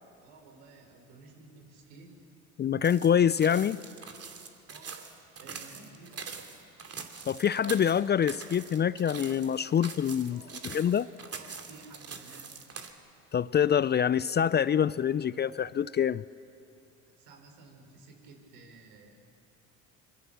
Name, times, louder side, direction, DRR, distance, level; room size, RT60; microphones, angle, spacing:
voice 1, 0.2-2.2 4.7-6.5 10.3-10.5 11.3-12.5 17.1-19.5, right 3 dB, 70° right, 3 dB, 5.0 m, -54 dB
voice 2, 2.6-3.8 7.3-10.4 10.7-11.1 13.3-16.2, left 8 dB, 25° left, 18 dB, 0.4 m, -25 dB
sound 1, 2.8-12.9, right 5 dB, 35° right, 2.8 m, -44 dB
25.0 x 23.0 x 7.0 m, 2.6 s
hypercardioid pair, 65°, 40 cm